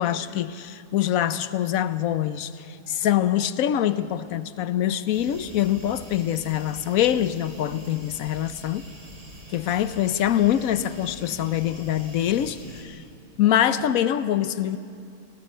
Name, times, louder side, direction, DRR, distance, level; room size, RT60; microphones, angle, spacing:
voice 1, 0.0-8.9 9.5-13.0 13.4-14.8, left 11 dB, 75° left, 13 dB, 1.1 m, -24 dB
sound 1, 5.1-12.8, right 1 dB, 55° right, 3.8 m, -45 dB
28.5 x 19.5 x 5.6 m, 2.4 s
omnidirectional pair, 1.5 m